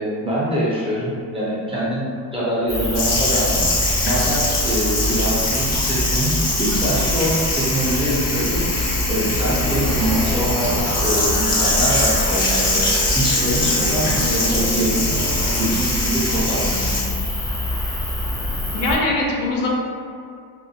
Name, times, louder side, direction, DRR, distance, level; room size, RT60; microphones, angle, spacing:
voice 1, 0.0-3.6 4.0-8.6 9.1-12.8 13.1-17.0, equal, 15° right, -8 dB, 0.8 m, -24 dB
sound 1, 2.7-19.0, left 1 dB, 10° left, 0.3 m, -25 dB
sound 2, 2.9-17.0, left 2 dB, 40° left, 0.8 m, -24 dB
sound 3, 9.4-15.7, equal, 90° right, 0.7 m, -29 dB
voice 2, 18.7-19.7, left 2 dB, 75° left, -2 dB, 0.6 m, -21 dB
2.6 x 2.2 x 2.7 m, 2.3 s
cardioid pair, 95°, 41 cm